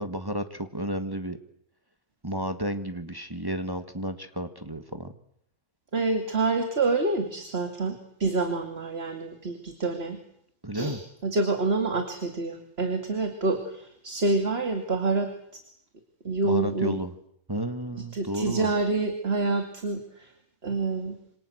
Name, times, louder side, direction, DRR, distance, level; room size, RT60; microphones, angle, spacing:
voice 1, 0.0-1.4 2.2-5.1 10.6-11.0 16.4-17.1 17.5-18.7, equal, 15° right, 8 dB, 1.6 m, -32 dB
voice 2, 5.9-10.2 10.7-15.3 16.2-17.0 18.1-20.3 20.6-21.2, right 3 dB, 45° right, 6 dB, 2.8 m, -27 dB
27.0 x 26.0 x 7.9 m, 0.70 s
omnidirectional pair, 1.5 m